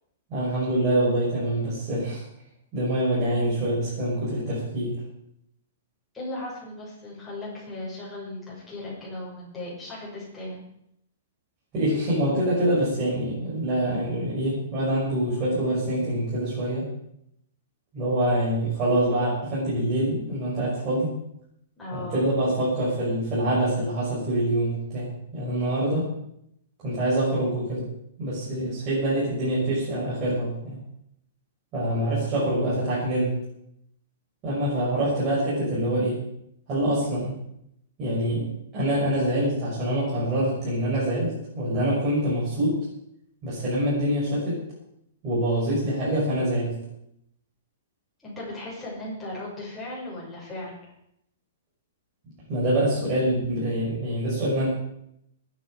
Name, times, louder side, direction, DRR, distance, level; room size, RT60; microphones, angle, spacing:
voice 1, 0.3-2.2 2.7-4.9 11.7-16.8 17.9-21.1 21.9-26.1 26.8-27.9 28.2-30.8 31.7-33.4 34.4-36.2 36.7-37.3 38.0-38.5 38.7-42.8 43.4-44.6 45.2-46.7 52.5-54.7, right 1 dB, 25° right, -8 dB, 6.5 m, -25 dB
voice 2, 6.1-10.6 21.8-22.2 48.2-50.9, left 1 dB, 5° left, -7 dB, 6.5 m, -37 dB
22.0 x 9.4 x 5.1 m, 0.77 s
hypercardioid pair, 165°, 0 cm